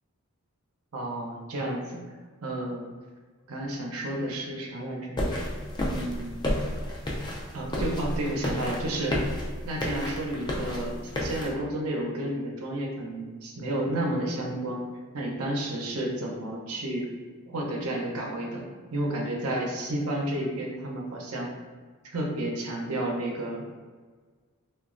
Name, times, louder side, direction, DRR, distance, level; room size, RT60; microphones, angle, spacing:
voice 1, 0.9-2.0 2.4-2.9 3.5-5.2 5.9-6.5 7.5-9.2 9.6-14.9 15.1-17.1 17.5-18.6 18.9-21.5 22.1-23.6, right 1 dB, 85° right, -1 dB, 0.6 m, -31 dB
sound 1, 5.2-11.5, left 1 dB, 20° left, 0.3 m, -31 dB
3.0 x 2.2 x 2.4 m, 1.5 s
head